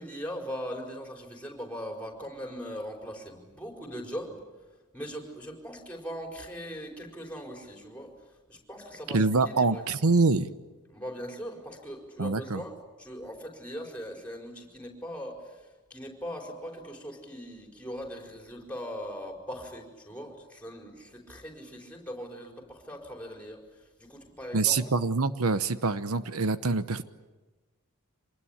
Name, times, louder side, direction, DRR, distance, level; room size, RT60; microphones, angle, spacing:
voice 1, 0.0-4.4 4.9-9.8 10.9-25.0, equal, 5° left, 2 dB, 4.8 m, -40 dB
voice 2, 9.1-10.5 12.2-12.6 24.5-27.0, right 3 dB, 80° right, 12 dB, 1.0 m, -25 dB
26.0 x 20.0 x 10.0 m, 1.2 s
head